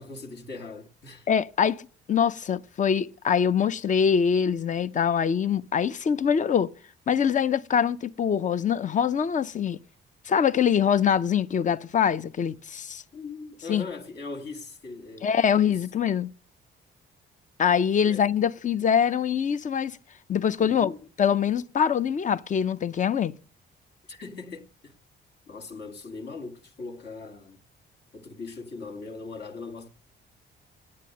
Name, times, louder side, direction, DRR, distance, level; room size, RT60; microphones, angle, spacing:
voice 1, 0.0-1.3 13.1-15.3 15.7-15.8 18.0-18.3 20.6-21.0 24.1-24.9 25.5-27.6 28.1-29.9, left 3 dB, 60° left, 1.8 m, -40 dB
voice 2, 1.3-1.8 2.1-6.7 7.1-9.8 10.3-13.0 13.7-13.9 15.2-16.3 17.6-20.0 20.3-20.9 21.2-23.3, left 7 dB, 40° left, 0.6 m, -24 dB
9.0 x 8.5 x 7.8 m
cardioid pair, 90°, 20 cm